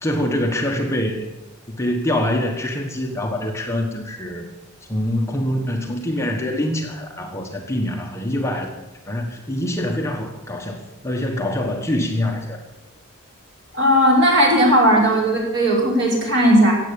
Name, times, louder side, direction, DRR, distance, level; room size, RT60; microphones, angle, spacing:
voice 1, 0.0-1.3 1.7-4.4 4.9-8.7 9.1-10.8 11.0-12.6, left 1 dB, 15° left, 1 dB, 1.3 m, -24 dB
voice 2, 13.7-16.7, equal, 55° right, -2 dB, 5.1 m, -16 dB
16.0 x 8.2 x 8.5 m, 1.0 s
head